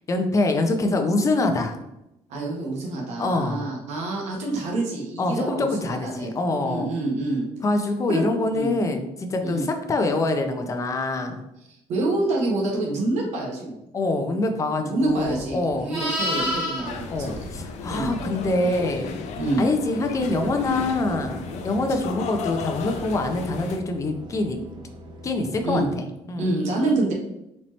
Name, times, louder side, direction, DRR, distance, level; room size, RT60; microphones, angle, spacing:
voice 1, 0.1-1.8 3.2-3.7 5.2-6.9 7.6-11.4 13.9-15.9 17.1-19.2 19.6-24.6 25.2-26.5 26.9-27.0, left 2 dB, 25° left, 6 dB, 0.5 m, -25 dB
voice 2, 2.3-6.4 6.6-7.5 8.1-8.2 8.5-8.7 9.4-9.7 11.9-13.8 14.7-17.4 17.9-18.1 19.4-19.7 25.6-25.9 26.4-27.1, right 2 dB, 80° right, -1 dB, 1.0 m, -27 dB
Livestock farm animals working animals, 15.2-18.5 22.8-23.0, left 1 dB, 10° right, 1.3 m, -31 dB
sound 1, 16.8-23.8, left 5 dB, 80° left, 0.5 m, -35 dB
sound 2, 20.2-26.0, right 1 dB, 40° right, 0.5 m, -43 dB
4.2 x 2.9 x 3.0 m, 0.87 s
cardioid pair, 155°, 12 cm